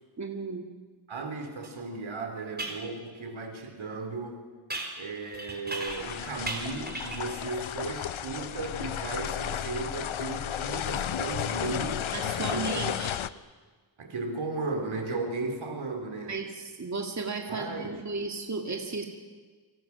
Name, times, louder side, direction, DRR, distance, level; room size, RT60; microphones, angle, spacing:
voice 1, 0.2-0.6 12.1-13.2 16.3-19.0, right 4 dB, 35° right, 2 dB, 2.2 m, -34 dB
voice 2, 1.1-4.4 5.0-12.1 12.3-12.9 14.0-16.4 17.5-18.0, right 3 dB, 80° right, 4 dB, 3.8 m, -35 dB
sound 1, 1.6-1.7 2.6-2.8 4.7-6.1 6.4-7.3, right 2 dB, 20° right, 3.7 m, -37 dB
sound 2, 5.9-13.3, left 10 dB, 85° left, 0.8 m, -33 dB
29.0 x 25.5 x 6.0 m, 1.4 s
wide cardioid pair, 145°, 47 cm